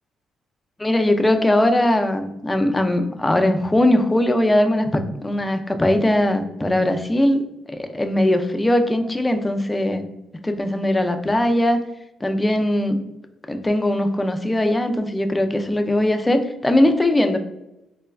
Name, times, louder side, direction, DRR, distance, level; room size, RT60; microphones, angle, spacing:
voice 1, 0.8-7.4 7.7-10.1 10.4-11.8 12.2-13.0 13.5-17.4, left 1 dB, 15° left, 6 dB, 0.3 m, -20 dB
3.9 x 2.2 x 2.3 m, 0.91 s
cardioid pair, 90°, 0 cm